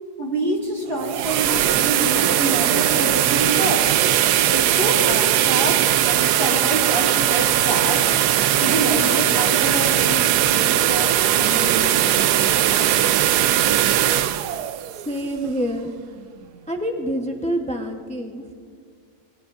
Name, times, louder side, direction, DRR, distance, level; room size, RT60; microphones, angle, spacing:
voice 1, 0.2-3.9 4.5-8.1 8.6-12.4, right 1 dB, 30° right, -2 dB, 2.5 m, -27 dB
sound 1, 0.8-15.8, right 12 dB, 75° right, 1.1 m, -19 dB
voice 2, 15.0-15.9 16.7-18.5, equal, 5° left, 2 dB, 0.5 m, -26 dB
27.0 x 21.0 x 2.5 m, 2.1 s
omnidirectional pair, 1.8 m